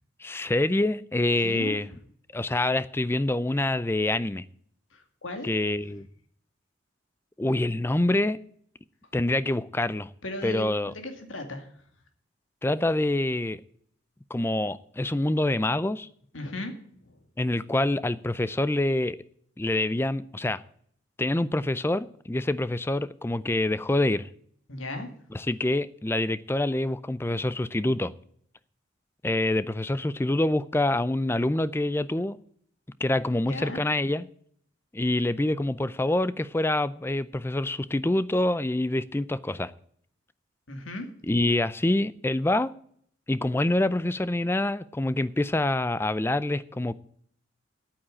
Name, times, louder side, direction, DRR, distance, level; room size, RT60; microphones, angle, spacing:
voice 1, 0.2-1.9 2.3-4.4 5.4-6.1 7.4-8.4 9.1-10.1 10.4-10.9 12.6-13.6 14.3-16.1 17.4-19.2 19.6-20.6 21.2-24.3 25.3-28.1 29.2-32.4 33.0-34.3 34.9-39.7 41.3-42.7 43.3-46.9, left 1 dB, 10° left, 0.4 m, -26 dB
voice 2, 1.4-1.8 4.9-5.5 10.2-11.7 16.3-16.7 17.1-17.2 24.7-25.1 33.5-33.8 40.7-41.1, left 2 dB, 80° left, 2.3 m, -36 dB
9.0 x 8.8 x 8.6 m
head